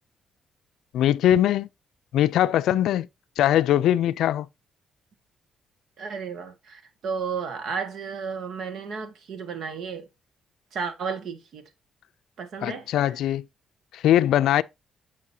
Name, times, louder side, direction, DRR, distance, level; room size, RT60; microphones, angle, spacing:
voice 1, 0.9-1.7 2.1-3.1 3.4-4.5 12.6-13.4 13.9-14.6, left 12 dB, 80° left, 0.4 m, -21 dB
voice 2, 6.0-10.1 10.7-11.7 12.4-13.1, right 5 dB, 70° right, 1.8 m, -33 dB
7.4 x 6.2 x 2.8 m
cardioid pair, 90°, 0 cm